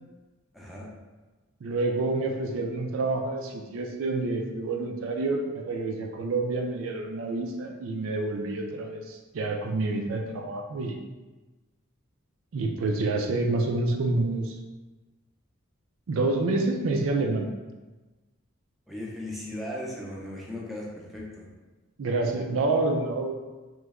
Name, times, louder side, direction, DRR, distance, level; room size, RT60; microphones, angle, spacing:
voice 1, 0.5-0.9 18.9-21.5, left 1 dB, ahead, -5 dB, 0.5 m, -37 dB
voice 2, 1.6-11.0 12.5-14.6 16.1-17.5 22.0-23.3, right 2 dB, 75° right, 2 dB, 0.4 m, -28 dB
3.0 x 2.2 x 3.5 m, 1.2 s
head